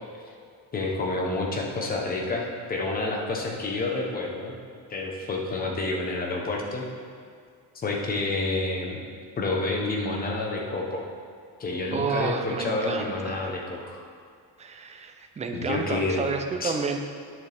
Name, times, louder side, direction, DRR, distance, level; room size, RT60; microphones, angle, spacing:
voice 1, 0.7-4.6 4.9-6.9 7.7-9.0 9.4-11.1 11.6-14.0 15.5-16.2 16.6-16.7, left 2 dB, 25° left, 0 dB, 0.9 m, -29 dB
voice 2, 11.9-13.5 14.6-17.0, right 5 dB, 20° right, 5 dB, 0.4 m, -30 dB
10.5 x 6.7 x 3.4 m, 2.2 s
cardioid pair, 175°, 38 cm